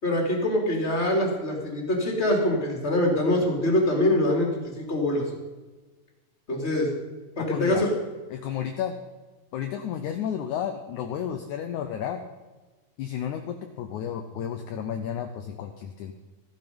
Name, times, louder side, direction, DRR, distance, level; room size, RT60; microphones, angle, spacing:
voice 1, 0.0-4.5 4.8-5.2 6.5-6.9 7.4-7.9, left 1 dB, 20° left, 0 dB, 2.8 m, -24 dB
voice 2, 7.4-7.8 8.3-8.9 9.5-12.2 13.0-16.1, left 9 dB, 75° left, 5 dB, 1.9 m, -32 dB
14.5 x 11.0 x 5.3 m, 1.2 s
omnidirectional pair, 4.3 m